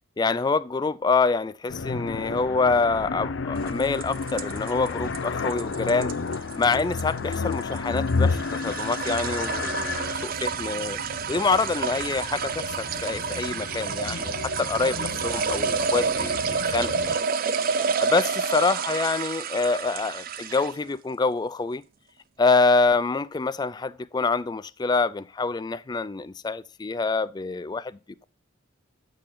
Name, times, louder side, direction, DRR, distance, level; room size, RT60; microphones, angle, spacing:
voice 1, 0.2-6.1 6.6-11.0 11.3-17.2 18.0-21.8 22.4-28.0, left 4 dB, 20° left, 0.3 m, -26 dB
Danger Zone, 1.7-17.2, left 4 dB, 65° left, 0.6 m, -32 dB
sound 1, 3.7-20.8, right 5 dB, 45° right, 0.4 m, -29 dB
9.1 x 6.6 x 3.8 m
head